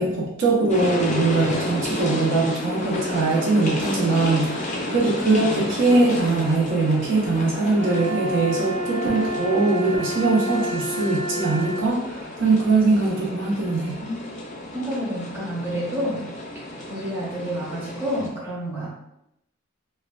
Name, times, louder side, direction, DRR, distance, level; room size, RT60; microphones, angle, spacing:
voice 1, 0.0-14.0, right 3 dB, 60° right, -3 dB, 0.5 m, -21 dB
sound 1, 0.7-18.3, left 1 dB, 35° left, 0.4 m, -32 dB
sound 2, 7.7-11.9, equal, 75° right, 0.9 m, -29 dB
voice 2, 14.7-16.3 16.9-18.9, equal, 10° right, -7 dB, 0.7 m, -29 dB
2.9 x 2.1 x 2.3 m, 0.82 s
head